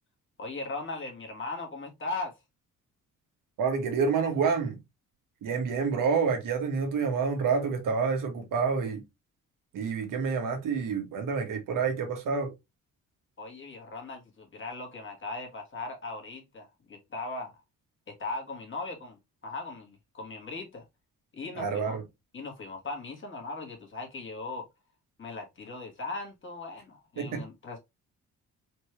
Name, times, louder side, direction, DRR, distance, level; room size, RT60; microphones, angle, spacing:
voice 1, 0.4-2.4 13.4-17.6 18.1-20.8 21.3-22.0 22.3-24.7 25.2-27.8, left 3 dB, 40° left, 2.1 m, -38 dB
voice 2, 3.6-4.8 5.4-9.0 9.7-12.5 21.6-22.0 27.2-27.4, right 5 dB, 75° right, 1.5 m, -28 dB
4.4 x 3.1 x 3.1 m
cardioid pair, 90°, 32 cm